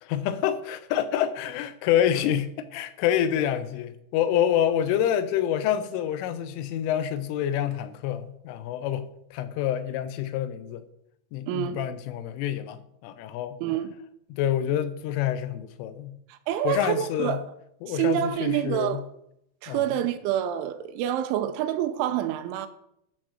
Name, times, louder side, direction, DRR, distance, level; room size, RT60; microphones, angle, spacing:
voice 1, 0.0-10.8 11.3-13.6 14.3-16.1 16.6-17.4 17.8-19.0 19.7-19.9, left 10 dB, 85° left, 3.4 m, -27 dB
voice 2, 11.5-11.8 13.6-13.9 16.3-17.4 17.9-19.1 19.6-22.7, right 11 dB, 85° right, 3.1 m, -27 dB
12.5 x 6.3 x 6.3 m
omnidirectional pair, 5.6 m